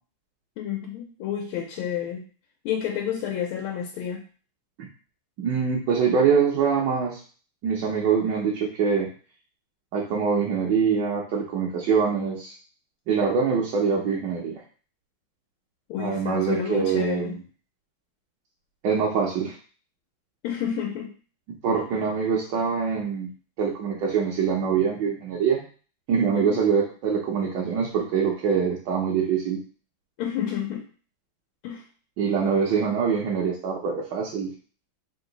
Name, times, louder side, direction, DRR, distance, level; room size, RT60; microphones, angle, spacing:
voice 1, 0.6-2.2 2.6-4.2 15.9-17.3 20.4-21.1 26.3-26.6 30.2-30.8 31.6-31.8, left 9 dB, 85° left, 1 dB, 1.5 m, -30 dB
voice 2, 5.4-7.2 7.6-9.1 9.9-12.5 13.1-14.6 16.0-17.4 18.8-19.6 21.6-23.3 23.6-25.6 26.1-29.6 32.2-34.5, right 6 dB, 70° right, -3 dB, 1.2 m, -24 dB
3.8 x 2.6 x 3.9 m, 0.40 s
omnidirectional pair, 2.3 m